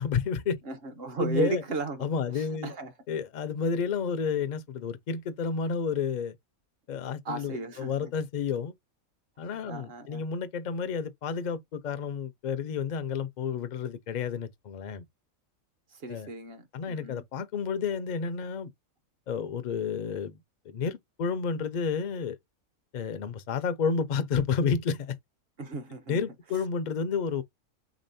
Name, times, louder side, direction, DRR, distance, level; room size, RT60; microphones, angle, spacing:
voice 1, 0.0-0.6 1.2-1.6 2.0-2.7 3.1-6.3 6.9-8.7 9.4-15.1 16.1-16.3 16.7-18.7 19.3-20.4 20.6-22.4 22.9-25.2 26.1-27.4, left 6 dB, 55° left, 0.5 m, -30 dB
voice 2, 0.6-2.9 7.2-8.1 9.7-10.2 15.9-17.2 25.6-26.2, right 3 dB, 55° right, 0.9 m, -35 dB
5.1 x 3.8 x 2.6 m
omnidirectional pair, 1.4 m